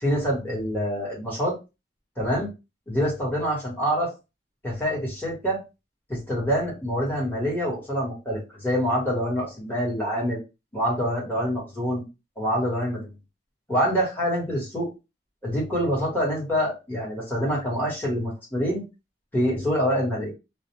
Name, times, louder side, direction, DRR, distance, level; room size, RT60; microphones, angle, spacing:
voice 1, 0.0-1.5 2.2-2.5 2.9-4.1 4.6-5.6 6.1-10.4 10.7-12.0 12.4-13.1 13.7-14.9 15.4-18.8 19.3-20.3, equal, 10° left, -5 dB, 1.2 m, -26 dB
2.4 x 2.1 x 3.0 m, 0.27 s
head